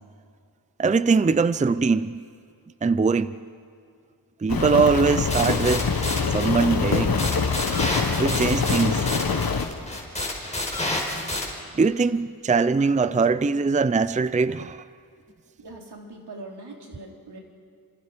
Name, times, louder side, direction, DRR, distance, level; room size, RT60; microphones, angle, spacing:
voice 1, 0.8-2.2 2.8-3.4 4.4-5.9 6.3-7.2 8.2-9.1 11.7-14.8, right 4 dB, 20° right, 0.5 m, -22 dB
Rain, 4.5-9.7, left 5 dB, 65° left, 1.7 m, -24 dB
sound 1, 5.3-11.4, left 1 dB, 15° left, 5.3 m, -30 dB
voice 2, 15.6-17.4, right 2 dB, 80° right, 4.0 m, -41 dB
29.0 x 26.5 x 5.1 m
wide cardioid pair, 85°, 39 cm